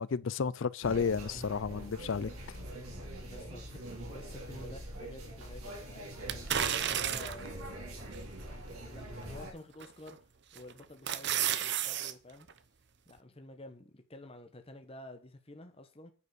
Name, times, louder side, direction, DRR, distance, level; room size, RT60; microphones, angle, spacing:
voice 1, 0.0-2.3, left 5 dB, 60° left, 0.4 m, -32 dB
sound 1, 0.8-9.5, right 1 dB, 85° right, 3.4 m, -43 dB
voice 2, 3.2-6.1 6.6-8.0 8.3-8.4 8.7-10.2 10.5-12.5 13.1-16.1, left 1 dB, 25° left, 1.0 m, -50 dB
sound 2, 6.3-7.5 8.1-8.2 9.8-10.1 10.6-12.1 12.5-12.6, right 10 dB, 50° right, 0.8 m, -32 dB
9.7 x 5.2 x 6.8 m
head